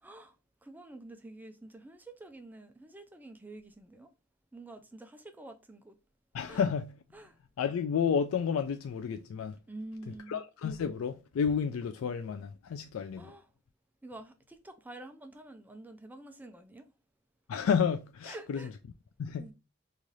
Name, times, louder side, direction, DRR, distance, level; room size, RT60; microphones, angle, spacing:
voice 1, 0.0-0.4 0.6-4.1 4.5-6.0 6.5-6.7 7.1-7.4 9.7-10.4 13.2-13.5 14.0-16.9 18.2-18.7 19.4-19.5, right 2 dB, 10° right, 0.3 m, -48 dB
voice 2, 6.3-6.9 7.6-9.6 10.3-13.3 17.5-18.6 19.2-19.5, left 7 dB, 85° left, 0.3 m, -31 dB
3.1 x 2.5 x 3.9 m
head